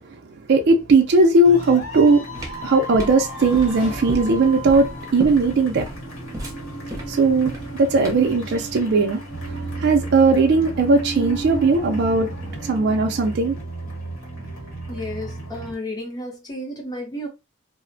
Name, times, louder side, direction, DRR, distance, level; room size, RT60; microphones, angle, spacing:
voice 1, 0.5-2.2 2.6-5.9 7.1-9.2 9.4-12.3 12.6-13.6, right 3 dB, 50° right, 0.4 m, -18 dB
sound 1, 1.4-15.7, right 2 dB, 80° left, 1.2 m, -35 dB
sound 2, 1.9-8.4, right 1 dB, 15° right, 0.7 m, -33 dB
sound 3, 3.1-13.4, right 2 dB, 60° left, 0.6 m, -36 dB
voice 2, 14.9-17.3, left 1 dB, 20° left, 0.7 m, -32 dB
2.5 x 2.0 x 2.6 m
head